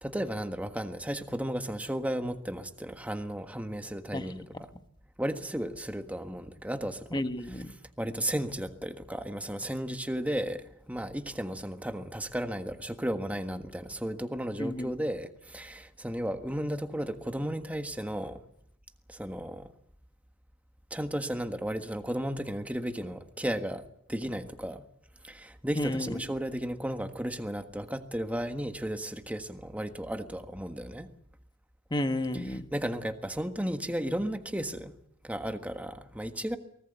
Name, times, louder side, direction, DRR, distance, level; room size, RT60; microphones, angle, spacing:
voice 1, 0.0-4.7 5.2-7.2 8.0-18.4 19.1-19.7 20.9-23.8 24.1-24.8 25.2-31.1 32.5-34.9 35.2-36.6, equal, 5° right, 7 dB, 1.5 m, -34 dB
voice 2, 7.1-7.7 14.6-14.9 25.8-26.2 31.9-32.7, left 1 dB, 20° left, 8 dB, 1.4 m, -31 dB
24.0 x 19.0 x 8.1 m, 0.71 s
head